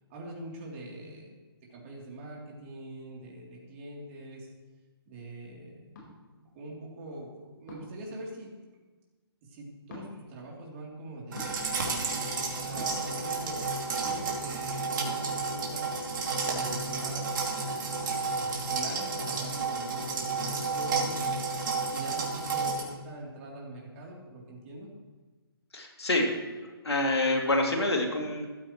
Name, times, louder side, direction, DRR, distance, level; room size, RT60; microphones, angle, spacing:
voice 1, 0.1-1.4 1.7-4.5 5.0-5.9 6.4-8.5 9.4-15.9 16.4-17.3 17.6-17.8 18.2-21.4 21.9-24.9, right 2 dB, 30° right, -3 dB, 3.4 m, -43 dB
sound 1, 5.9-6.1 7.7-8.0 9.9-10.1 11.3-11.5 12.8-13.1 14.1-14.2, left 2 dB, 50° left, 4.8 m, -44 dB
sound 2, 11.3-22.8, right 4 dB, 50° right, 2.9 m, -31 dB
voice 2, 25.7-26.3 26.8-28.5, left 2 dB, 90° left, 1 dB, 2.9 m, -27 dB
14.5 x 13.0 x 3.2 m, 1.3 s
hypercardioid pair, 145°, 13 cm